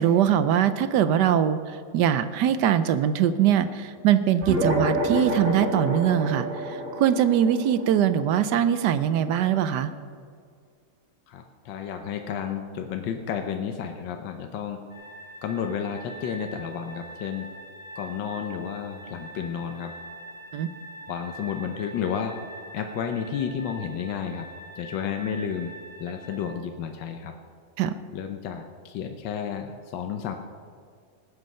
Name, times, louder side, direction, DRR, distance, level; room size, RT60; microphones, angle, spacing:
voice 1, 0.0-9.9 20.5-20.7 27.8-28.0, right 9 dB, 70° right, 12 dB, 1.0 m, -22 dB
sound 1, 4.4-9.2, right 1 dB, 40° right, 1.6 m, -29 dB
voice 2, 11.3-14.8 15.4-17.5 18.0-19.9 21.1-22.4 22.7-24.5 24.8-25.7 26.0-27.3 28.1-30.4, left 7 dB, 70° left, 5 dB, 1.4 m, -31 dB
sound 2, 14.9-26.5, right 1 dB, 25° right, 3.4 m, -44 dB
19.0 x 8.4 x 5.5 m, 2.1 s
omnidirectional pair, 2.3 m